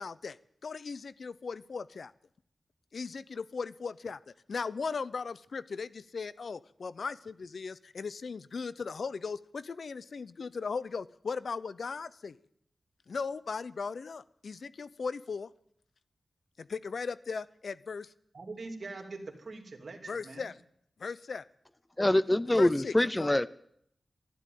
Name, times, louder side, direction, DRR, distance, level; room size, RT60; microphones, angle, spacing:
voice 1, 0.0-2.1 2.9-4.2 4.5-12.4 13.1-15.5 16.6-18.1 20.1-20.5 21.0-21.4 22.6-23.3, left 5 dB, 75° left, 0.6 m, -38 dB
voice 2, 18.3-20.5, right 3 dB, 65° right, 2.7 m, -43 dB
voice 3, 22.0-23.5, left 1 dB, 20° left, 0.6 m, -25 dB
12.5 x 12.0 x 9.3 m
wide cardioid pair, 75°, 0 cm